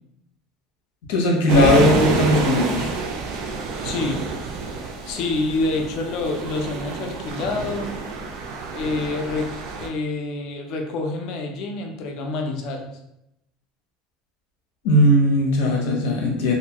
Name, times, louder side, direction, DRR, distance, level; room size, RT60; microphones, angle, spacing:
voice 1, 1.1-2.9 14.8-16.5, left 1 dB, 90° left, 0 dB, 0.7 m, -18 dB
sound 1, 1.5-9.9, right 4 dB, 50° right, 0.4 m, -28 dB
voice 2, 3.8-4.2 5.0-7.9 8.7-12.9, left 3 dB, 45° left, 2 dB, 0.4 m, -27 dB
2.6 x 2.2 x 2.9 m, 0.83 s
cardioid pair, 175°, 0 cm